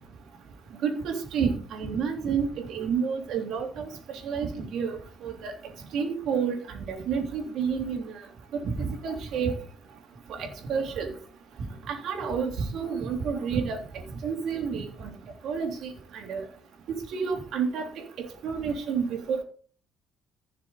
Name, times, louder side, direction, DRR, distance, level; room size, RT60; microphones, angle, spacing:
voice 1, 0.8-5.5 5.9-8.2 8.5-9.5 10.3-11.1 11.9-13.8 14.2-15.1 15.4-16.4 17.1-17.9 18.2-19.4, right 6 dB, 65° right, 2 dB, 3.2 m, -30 dB
15.5 x 6.7 x 4.1 m, 0.42 s
cardioid pair, 145°, 0 cm